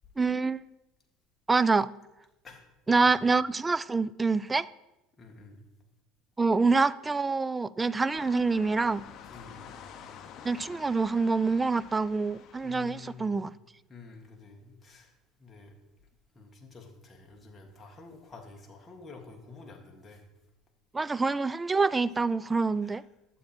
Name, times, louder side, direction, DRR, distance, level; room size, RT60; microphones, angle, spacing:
voice 1, 0.2-0.6 1.5-1.9 2.9-4.7 6.4-9.0 10.4-13.5 20.9-23.0, right 4 dB, 15° right, 0.3 m, -26 dB
voice 2, 5.2-5.6 9.3-9.6 12.6-13.4 13.9-15.1 15.4-15.7 16.3-20.2 22.8-23.0, left 4 dB, 20° left, 1.7 m, -49 dB
sound 1, 8.1-13.1, left 7 dB, 50° left, 0.9 m, -48 dB
12.0 x 7.5 x 4.3 m
supercardioid pair, 115°, 0 cm